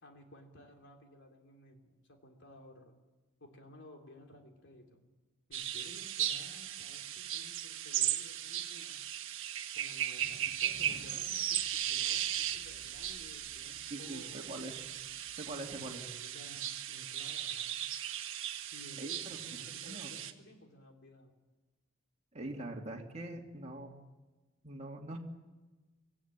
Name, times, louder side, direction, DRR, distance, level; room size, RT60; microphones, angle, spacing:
voice 1, 0.0-3.0 3.4-5.1 5.5-9.0 9.7-14.8 15.6-17.9 18.7-21.4, left 1 dB, 60° left, 3 dB, 3.2 m, -55 dB
sound 1, 5.5-20.3, right 11 dB, 65° right, 1.4 m, -37 dB
sound 2, 10.2-16.0, right 1 dB, 15° left, 5.4 m, -59 dB
voice 2, 13.9-14.7 15.4-16.0 19.0-19.4 19.8-20.1 22.3-23.9 24.6-25.2, right 1 dB, 30° right, 0 dB, 2.6 m, -43 dB
24.0 x 16.0 x 8.9 m, 1.2 s
head